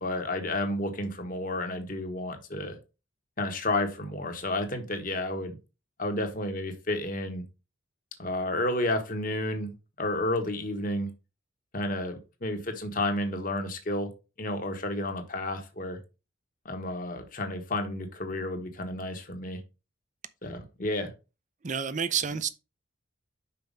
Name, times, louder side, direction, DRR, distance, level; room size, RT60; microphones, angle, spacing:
voice 1, 0.0-2.8 3.4-5.6 6.0-7.4 8.2-9.7 10.0-11.1 11.7-14.1 14.4-16.0 16.6-19.6 20.4-21.1, left 1 dB, 40° left, 1.2 m, -31 dB
voice 2, 21.6-22.5, right 7 dB, 35° right, 0.5 m, -29 dB
5.8 x 4.5 x 5.2 m
head